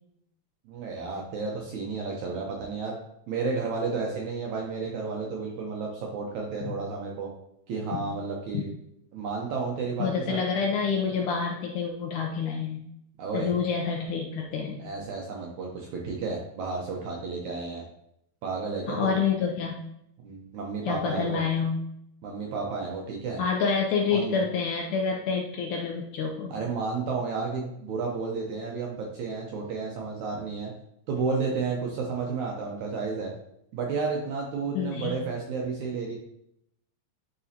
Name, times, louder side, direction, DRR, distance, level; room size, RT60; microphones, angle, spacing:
voice 1, 0.7-3.0 3.3-7.3 7.7-8.7 9.1-10.4 13.2-13.5 14.8-17.8 18.4-19.2 20.2-21.4 22.2-23.4 24.1-24.4 26.5-30.7 31.1-33.3 33.7-36.2, right 4 dB, 75° right, -1 dB, 1.8 m, -32 dB
voice 2, 10.0-12.9 13.3-14.9 18.9-19.8 20.9-21.8 23.4-26.6 34.8-35.1, left 6 dB, 75° left, 1 dB, 1.8 m, -28 dB
10.5 x 4.1 x 2.8 m, 0.77 s
omnidirectional pair, 4.2 m